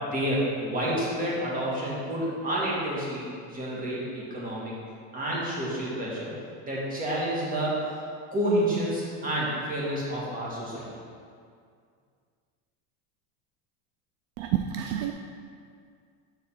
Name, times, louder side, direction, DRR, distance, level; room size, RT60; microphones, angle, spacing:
voice 1, 0.0-4.7 5.1-6.3 6.6-7.8 8.3-10.9, right 1 dB, 20° right, -6 dB, 1.7 m, -29 dB
voice 2, 14.4-15.1, right 11 dB, 65° right, 5 dB, 0.5 m, -28 dB
7.0 x 3.8 x 5.7 m, 2.2 s
cardioid pair, 155°, 41 cm